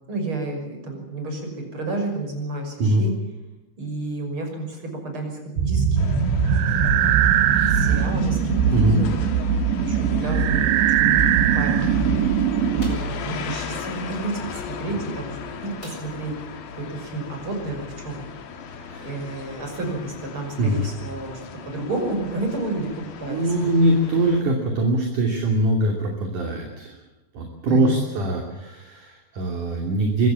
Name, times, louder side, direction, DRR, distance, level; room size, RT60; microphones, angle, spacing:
voice 1, 0.1-3.1 3.8-6.2 6.9-7.4 7.7-9.2 9.8-11.3 11.5-11.7 12.1-12.3 12.7-16.3 16.8-18.3 19.0-22.9 23.2-23.7 27.7-28.0, right 2 dB, 30° right, 3 dB, 6.4 m, -31 dB
sound 1, 5.6-13.0, right 8 dB, 80° right, 3.6 m, -20 dB
sound 2, 6.0-24.4, left 5 dB, 60° left, 3.6 m, -37 dB
sound 3, 12.8-13.2 15.8-16.4 16.8-16.9 17.3-17.4, left 1 dB, 20° left, 6.1 m, -44 dB
voice 2, 18.8-19.2 20.6-20.9 23.3-27.0 27.3-30.3, right 1 dB, 50° right, 2 dB, 4.1 m, -22 dB
24.0 x 16.5 x 8.8 m, 1.0 s
omnidirectional pair, 5.1 m